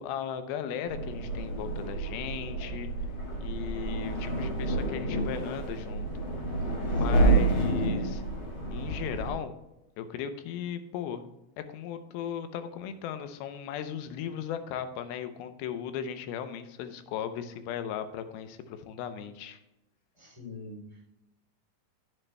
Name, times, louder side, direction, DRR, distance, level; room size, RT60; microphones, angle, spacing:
voice 1, 0.0-2.9 3.4-6.1 6.9-8.2 8.7-9.5 10.0-11.3 11.7-19.6, left 8 dB, 85° left, 9 dB, 2.6 m, -37 dB
sound 1, 0.9-9.3, right 2 dB, 35° left, 1.9 m, -29 dB
voice 2, 6.9-7.3 20.2-21.0, left 2 dB, 10° right, -5 dB, 2.2 m, -45 dB
9.8 x 9.0 x 2.2 m, 0.92 s
omnidirectional pair, 4.3 m